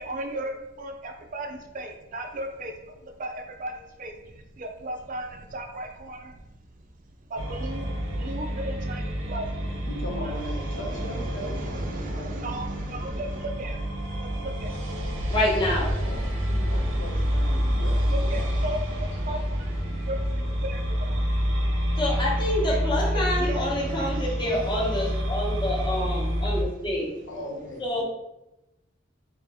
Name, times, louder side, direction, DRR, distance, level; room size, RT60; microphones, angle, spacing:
voice 1, 0.0-6.6 7.2-9.9 10.2-13.9 14.2-14.8 16.6-21.3 23.1-27.2, right 1 dB, 40° right, 5 dB, 0.4 m, -37 dB
sound 1, 7.4-26.6, equal, 85° right, 0.8 m, -28 dB
voice 2, 9.9-12.5 16.0-18.5 19.3-19.4 27.3-28.0, equal, 65° left, -1 dB, 0.8 m, -38 dB
voice 3, 15.3-15.9 22.0-27.1 27.8-28.0, left 1 dB, 25° left, -4 dB, 0.8 m, -27 dB
3.4 x 2.5 x 3.4 m, 0.94 s
head